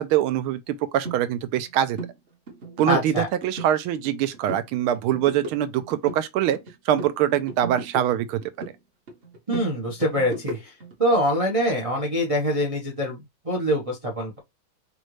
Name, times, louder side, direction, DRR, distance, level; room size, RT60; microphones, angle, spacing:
voice 1, 0.0-2.0 2.8-6.6 6.8-8.7, right 11 dB, 80° right, 1.4 m, -24 dB
sound 1, 1.0-1.2 1.5-1.7 1.9-2.1 2.5-3.7 4.0-4.7 5.0-6.7 7.0-8.8 9.1-10.9, right 2 dB, 35° right, 1.0 m, -36 dB
voice 2, 2.9-3.3 9.5-10.7 11.0-13.2 13.4-14.4, equal, 60° right, 0.3 m, -24 dB
5.3 x 2.5 x 3.1 m
omnidirectional pair, 2.4 m